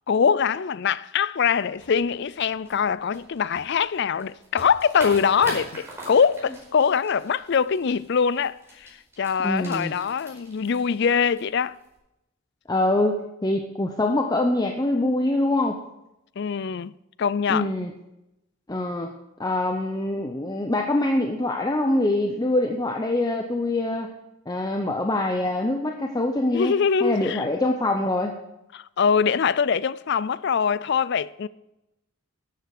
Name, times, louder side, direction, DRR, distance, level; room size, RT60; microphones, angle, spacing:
voice 1, 0.1-11.8 16.4-16.9 17.2-17.7 26.5-27.5 28.7-31.5, left 6 dB, 55° left, 0.4 m, -23 dB
sound 1, 1.7-12.0, right 1 dB, 15° right, 4.8 m, -43 dB
voice 2, 9.4-9.9 12.7-15.8 17.5-17.9 18.7-19.1 19.4-24.2 24.5-26.7 27.0-28.3, left 2 dB, 20° left, 0.7 m, -24 dB
13.0 x 8.0 x 6.6 m
head